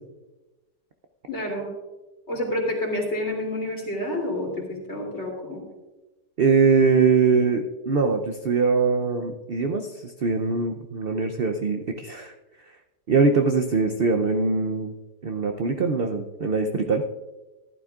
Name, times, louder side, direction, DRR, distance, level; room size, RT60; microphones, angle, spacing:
voice 1, 1.3-1.7 2.3-5.6, left 1 dB, 40° left, -2 dB, 3.2 m, -29 dB
voice 2, 6.4-12.3 13.1-14.9 15.2-17.0, right 4 dB, 70° right, 5 dB, 0.5 m, -22 dB
15.0 x 11.5 x 2.4 m, 1.1 s
omnidirectional pair, 1.8 m